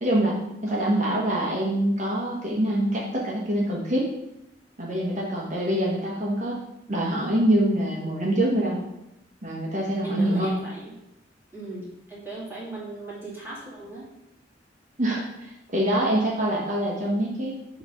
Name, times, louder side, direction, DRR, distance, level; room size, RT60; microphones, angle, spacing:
voice 1, 0.0-4.1 4.8-6.6 6.9-8.8 9.4-10.5 15.0-17.6, right 1 dB, 40° right, -3 dB, 1.2 m, -25 dB
voice 2, 10.0-10.9 11.5-14.1, right 2 dB, 10° right, -8 dB, 2.2 m, -38 dB
5.8 x 3.2 x 5.3 m, 0.85 s
head